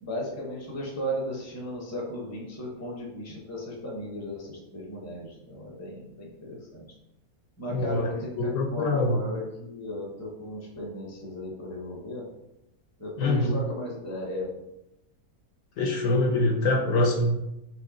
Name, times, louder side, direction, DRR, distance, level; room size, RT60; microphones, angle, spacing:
voice 1, 0.0-6.9 7.6-12.2 13.0-14.5, equal, 15° left, -3 dB, 0.6 m, -36 dB
voice 2, 7.7-8.1 8.4-9.2 13.2-13.5 15.8-17.4, left 2 dB, 70° left, 1 dB, 1.0 m, -24 dB
3.4 x 2.8 x 3.8 m, 0.88 s
omnidirectional pair, 1.6 m